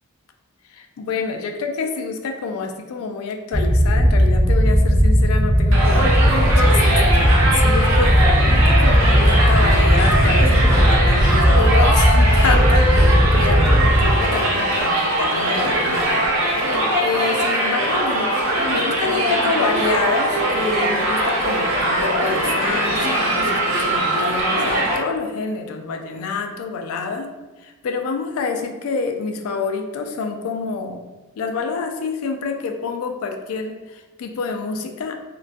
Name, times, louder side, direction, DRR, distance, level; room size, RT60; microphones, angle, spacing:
voice 1, 0.7-18.3 18.7-27.3 27.6-31.0 31.4-35.2, left 4 dB, 75° left, 4 dB, 0.3 m, -27 dB
sound 1, 3.5-14.1, equal, 20° right, 0.3 m, -16 dB
Crowd, 5.7-25.0, right 1 dB, 70° right, 0.6 m, -21 dB
2.2 x 2.2 x 2.5 m, 1.1 s
head